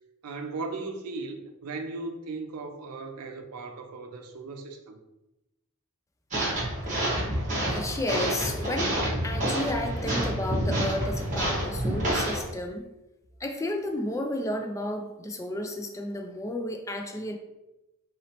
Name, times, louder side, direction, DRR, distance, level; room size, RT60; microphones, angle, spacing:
voice 1, 0.2-5.0, right 3 dB, 85° right, 5 dB, 0.5 m, -37 dB
sound 1, 6.3-12.4, right 1 dB, 35° right, 1.2 m, -28 dB
voice 2, 7.7-12.9 13.4-17.4, left 1 dB, 15° left, 4 dB, 0.3 m, -32 dB
3.9 x 3.0 x 2.9 m, 0.94 s
head